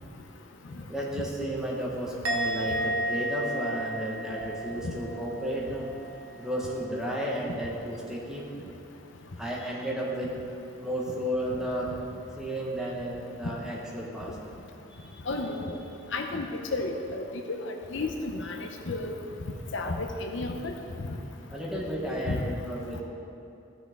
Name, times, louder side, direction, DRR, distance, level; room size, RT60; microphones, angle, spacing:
voice 1, 0.7-5.9 6.4-8.5 9.4-11.9 12.4-14.3 14.9-15.2 15.4-15.5 21.5-23.0, equal, 5° right, -5 dB, 1.2 m, -33 dB
Musical instrument, 2.2-5.6 5.9-6.3, right 1 dB, 85° right, 1.0 m, -32 dB
voice 2, 15.3-15.8 16.1-18.6 18.9-19.1 19.7-20.7 22.3-22.4, left 2 dB, 65° left, 4 dB, 0.7 m, -32 dB
14.0 x 6.2 x 3.6 m, 2.8 s
head